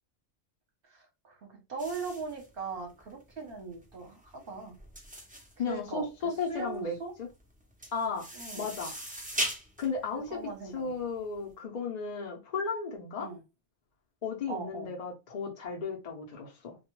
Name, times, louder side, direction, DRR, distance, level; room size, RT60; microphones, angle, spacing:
voice 1, 0.8-4.7 5.6-7.1 8.3-8.7 10.1-11.0 13.2-13.4 14.5-14.9, right 4 dB, 55° right, 2 dB, 0.9 m, -40 dB
sound 1, 1.8-11.4, equal, 15° right, 0.3 m, -40 dB
voice 2, 5.6-7.3 7.9-8.2 8.6-8.9 9.8-10.2 10.7-13.3 14.2-16.8, left 5 dB, 50° left, 0 dB, 0.5 m, -34 dB
2.2 x 2.1 x 2.9 m, 0.27 s
omnidirectional pair, 1.2 m